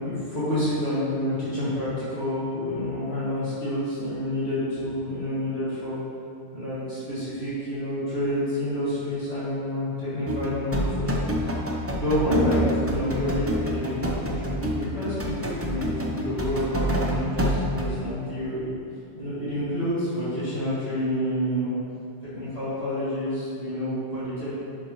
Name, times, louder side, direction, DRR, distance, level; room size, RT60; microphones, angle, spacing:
voice 1, 0.0-6.0 6.5-11.3 11.6-18.7 19.2-21.7 22.3-24.6, equal, 65° left, -13 dB, 2.2 m, -28 dB
sound 1, 10.3-17.9, equal, 15° right, 0.5 m, -27 dB
11.0 x 4.7 x 3.0 m, 2.5 s
omnidirectional pair, 1.2 m